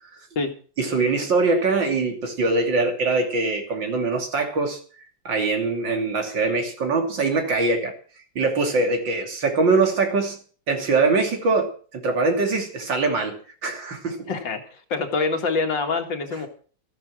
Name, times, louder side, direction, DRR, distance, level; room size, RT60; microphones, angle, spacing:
voice 1, 0.8-4.8 5.3-7.9 8.4-10.4 10.7-13.4 13.6-14.3, right 3 dB, 75° right, 4 dB, 3.6 m, -22 dB
voice 2, 14.3-16.5, left 4 dB, 75° left, 5 dB, 2.7 m, -25 dB
14.5 x 11.0 x 6.3 m, 0.42 s
omnidirectional pair, 2.0 m